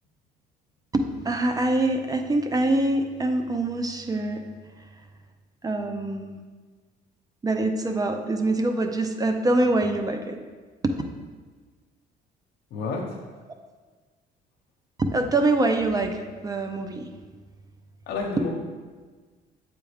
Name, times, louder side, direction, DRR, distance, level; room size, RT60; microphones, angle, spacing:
voice 1, 0.9-4.5 5.6-6.4 7.4-10.4 10.8-11.0 15.0-17.1, right 2 dB, 20° right, 6 dB, 0.5 m, -24 dB
voice 2, 12.7-13.2 18.1-18.5, left 3 dB, 80° left, -1 dB, 0.8 m, -29 dB
8.1 x 3.5 x 3.4 m, 1.4 s
cardioid pair, 110°, 17 cm